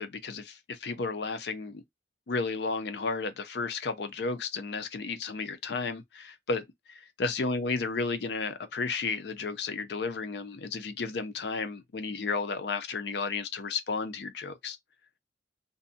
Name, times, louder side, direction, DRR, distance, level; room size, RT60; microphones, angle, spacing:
voice 1, 0.0-1.8 2.3-14.8, left 4 dB, 65° left, 0.5 m, -33 dB
2.6 x 2.1 x 2.6 m
head